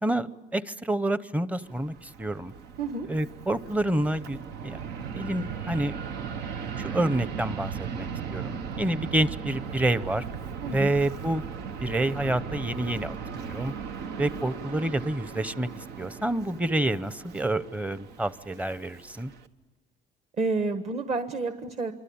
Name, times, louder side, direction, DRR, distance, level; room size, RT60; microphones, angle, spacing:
voice 1, 0.0-2.5 3.1-4.8 5.1-6.0 6.8-10.2 10.7-11.4 11.8-13.2 13.4-13.7 14.2-19.3, right 1 dB, 10° right, 15 dB, 0.8 m, -28 dB
Fixed-wing aircraft airplane, 1.6-19.5, right 6 dB, 85° right, 1.4 m, -37 dB
voice 2, 10.6-10.9 20.4-21.9, right 3 dB, 40° right, 9 dB, 1.4 m, -29 dB
27.0 x 24.5 x 8.7 m, 1.2 s
cardioid pair, 110°, 17 cm